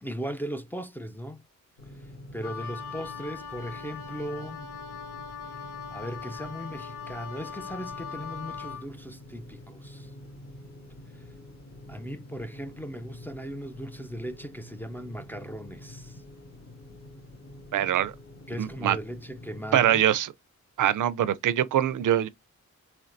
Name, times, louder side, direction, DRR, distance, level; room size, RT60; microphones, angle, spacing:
voice 1, 0.0-1.4 2.3-4.7 5.9-10.1 11.9-16.2 18.5-20.0, equal, 5° left, 0.4 m, -38 dB
sound 1, 1.8-19.7, left 1 dB, 50° left, 2.2 m, -47 dB
Wind instrument woodwind instrument, 2.4-8.9, left 6 dB, 85° left, 1.0 m, -40 dB
voice 2, 17.7-18.1 18.6-19.0 19.7-20.3 20.8-22.3, right 11 dB, 80° right, 0.5 m, -23 dB
4.4 x 3.0 x 2.5 m
wide cardioid pair, 120°, 31 cm